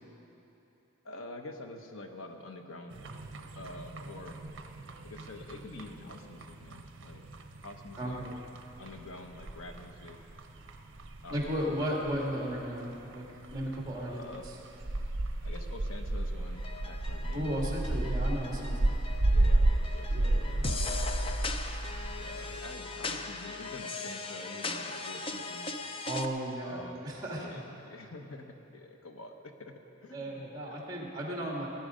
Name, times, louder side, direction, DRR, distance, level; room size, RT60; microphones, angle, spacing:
voice 1, 1.0-3.0 3.6-4.4 5.0-7.3 7.6-8.2 8.8-10.2 11.2-11.7 14.0-14.4 15.4-18.0 19.3-21.0 22.2-25.7 26.6-27.0 27.4-29.7 30.0-31.1, left 2 dB, 85° left, 4 dB, 1.1 m, -47 dB
sound 1, 2.9-22.6, right 2 dB, 65° right, 0.8 m, -33 dB
voice 2, 8.0-8.3 11.3-14.2 17.3-18.9 20.1-20.6 26.1-27.6 30.1-31.7, equal, 20° right, -3 dB, 2.4 m, -35 dB
sound 2, 16.6-26.3, left 2 dB, 25° left, 0.5 m, -38 dB
18.5 x 10.5 x 5.1 m, 3.0 s
head